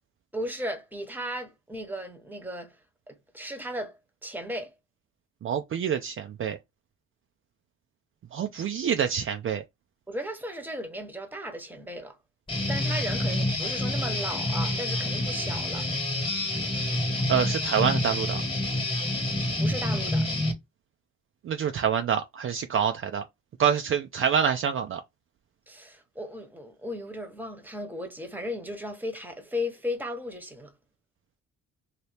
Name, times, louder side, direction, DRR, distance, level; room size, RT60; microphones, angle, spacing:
voice 1, 0.3-2.7 3.1-3.9 4.2-4.7 10.1-12.2 12.7-15.9 19.6-20.3 25.7-30.7, equal, 5° right, 1.0 m, -35 dB
voice 2, 5.4-6.6 8.3-9.6 17.3-18.4 21.4-23.2 23.6-25.0, right 8 dB, 45° right, 0.4 m, -26 dB
Guitar, 12.5-20.5, left 1 dB, 15° left, 1.3 m, -28 dB
2.9 x 2.8 x 3.2 m
cardioid pair, 90°, 30 cm